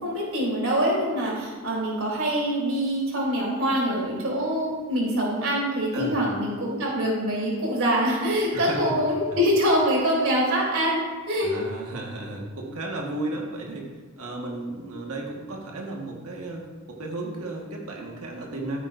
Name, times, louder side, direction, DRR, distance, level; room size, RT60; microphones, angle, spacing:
voice 1, 0.0-11.5, equal, 70° right, -3 dB, 3.4 m, -24 dB
voice 2, 8.5-8.9 11.4-13.9 14.2-18.8, right 2 dB, 90° right, -1 dB, 1.6 m, -34 dB
14.5 x 8.7 x 2.6 m, 1.4 s
head